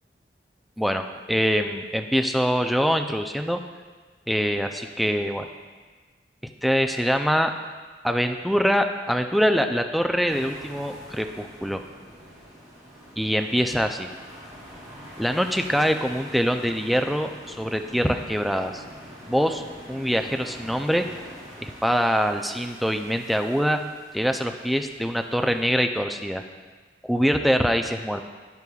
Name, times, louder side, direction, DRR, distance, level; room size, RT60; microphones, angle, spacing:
voice 1, 0.8-3.6 4.3-5.5 6.6-7.5 8.0-11.8 13.2-14.1 15.2-18.8 19.3-19.6 19.9-21.1 21.6-23.8 24.1-26.4 27.0-28.3, equal, ahead, 5 dB, 0.3 m, -24 dB
sound 1, 10.3-25.7, equal, 20° right, 2.5 m, -45 dB
10.5 x 9.7 x 2.3 m, 1.4 s
head